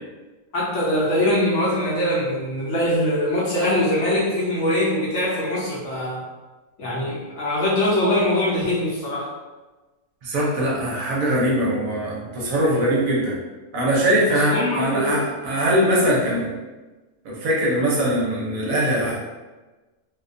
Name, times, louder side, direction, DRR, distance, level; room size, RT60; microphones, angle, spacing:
voice 1, 0.5-6.2 6.8-9.3 14.3-15.3, left 1 dB, 65° left, -7 dB, 0.8 m, -22 dB
voice 2, 10.2-13.4 13.7-16.5 17.2-19.2, right 1 dB, 70° right, -4 dB, 1.0 m, -21 dB
2.6 x 2.1 x 2.5 m, 1.2 s
omnidirectional pair, 1.6 m